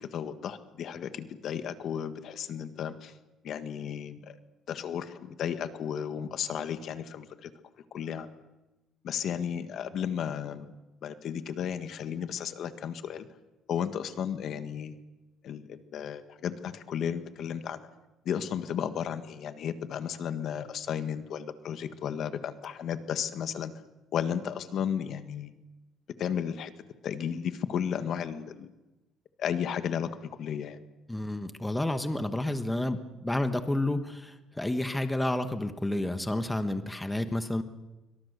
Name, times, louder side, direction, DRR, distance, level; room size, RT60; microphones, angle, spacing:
voice 1, 0.0-3.1 3.4-4.4 4.7-7.5 7.9-8.3 9.0-10.7 11.0-13.3 13.7-15.0 15.4-17.8 18.2-23.7 24.1-25.5 26.2-26.7 27.0-28.7 29.4-30.8, left 8 dB, 55° left, 10 dB, 1.6 m, -34 dB
voice 2, 31.1-37.6, left 1 dB, 5° left, 8 dB, 1.3 m, -30 dB
26.5 x 24.5 x 6.7 m, 1.0 s
cardioid pair, 145°, 0 cm